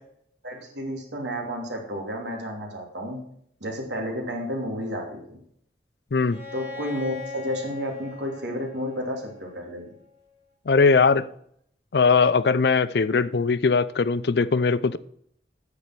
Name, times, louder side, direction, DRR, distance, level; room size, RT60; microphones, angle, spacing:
voice 1, 0.4-3.2 3.6-5.4 6.5-9.9, equal, 80° right, 3.1 m, -31 dB
voice 2, 6.1-6.4 10.7-11.3 11.9-15.0, left 4 dB, 65° left, 0.5 m, -20 dB
Bowed string instrument, 6.3-10.0, left 4 dB, 15° left, 4.0 m, -40 dB
9.8 x 7.0 x 6.1 m
head